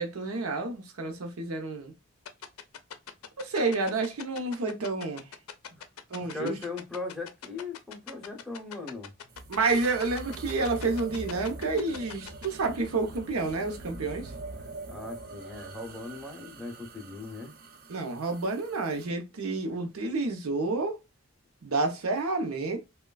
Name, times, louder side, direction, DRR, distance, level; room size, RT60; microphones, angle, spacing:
voice 1, 0.0-1.9 3.4-5.3 6.1-6.5 9.5-14.3 17.9-21.0 21.6-22.8, right 3 dB, 85° right, 0.7 m, -29 dB
sound 1, 2.3-12.5, left 8 dB, 85° left, 0.4 m, -41 dB
voice 2, 6.2-9.1 14.9-17.5, left 3 dB, ahead, 0.6 m, -39 dB
sound 2, 9.3-19.1, right 2 dB, 45° right, 0.4 m, -44 dB
3.0 x 2.2 x 2.2 m
head